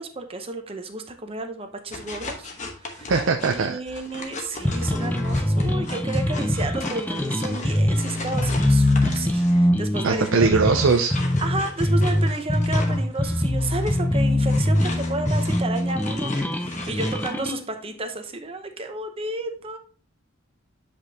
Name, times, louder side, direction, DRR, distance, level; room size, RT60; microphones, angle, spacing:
voice 1, 0.0-2.5 2.8-3.1 3.5-10.7 11.4-19.8, right 2 dB, 25° right, 6 dB, 0.8 m, -32 dB
sound 1, 1.9-9.7 10.1-17.3, left 3 dB, 35° left, 1.0 m, -38 dB
voice 2, 3.1-3.8 10.0-11.1, right 4 dB, 60° right, 5 dB, 0.5 m, -20 dB
sound 2, 4.6-17.6, left 1 dB, 10° left, 0.5 m, -23 dB
8.1 x 5.1 x 2.8 m, 0.41 s
head